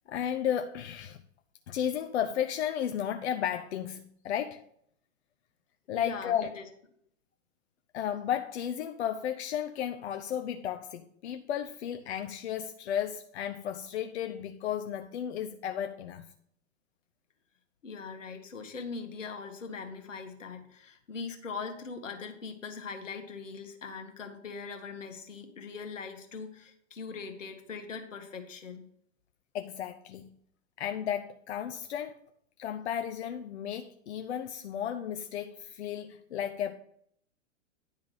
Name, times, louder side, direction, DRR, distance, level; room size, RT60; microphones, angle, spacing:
voice 1, 0.1-1.2 1.7-4.6 5.9-6.5 7.9-16.3 29.5-30.3 30.8-32.2 32.6-36.7, left 9 dB, 60° left, 0.7 m, -33 dB
voice 2, 6.0-6.6 17.8-28.9, left 5 dB, 85° left, 1.6 m, -41 dB
10.5 x 3.6 x 6.5 m
hypercardioid pair, 120°, 37 cm